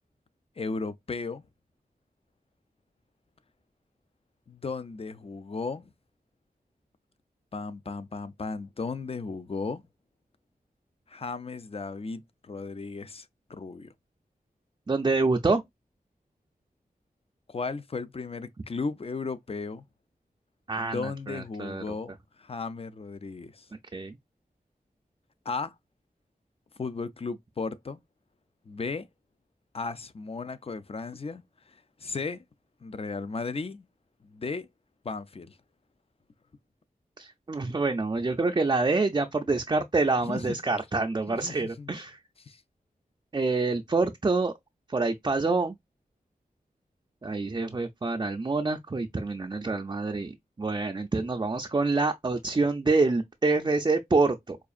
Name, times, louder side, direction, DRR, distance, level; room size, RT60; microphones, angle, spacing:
voice 1, 0.6-1.4 4.5-5.9 7.5-9.8 11.1-13.9 17.5-19.8 20.8-22.1 22.4-23.7 25.5-25.7 26.8-28.0 28.7-29.1 29.7-32.4 32.8-33.9 34.2-34.7 35.0-35.6 40.2-40.6 41.3-41.9 42.4-42.6, left 4 dB, 40° left, 0.4 m, -35 dB
voice 2, 14.9-15.6 20.7-21.8 23.9-24.2 37.2-42.2 43.3-44.5 44.9-45.8 47.2-54.6, right 3 dB, 30° right, 0.4 m, -26 dB
4.6 x 2.4 x 2.4 m
wide cardioid pair, 60°, 16 cm